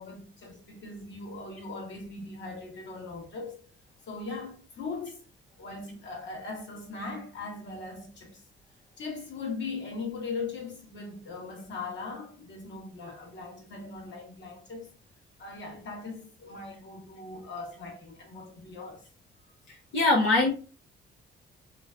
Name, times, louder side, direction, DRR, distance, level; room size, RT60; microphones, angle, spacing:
voice 1, 0.0-3.6 4.1-5.2 5.6-8.4 9.0-14.9 15.4-19.1, left 3 dB, 65° left, 1.4 m, -39 dB
voice 2, 19.7-20.5, left 2 dB, 85° left, 0.8 m, -23 dB
3.2 x 3.1 x 2.4 m
cardioid pair, 90°, 20 cm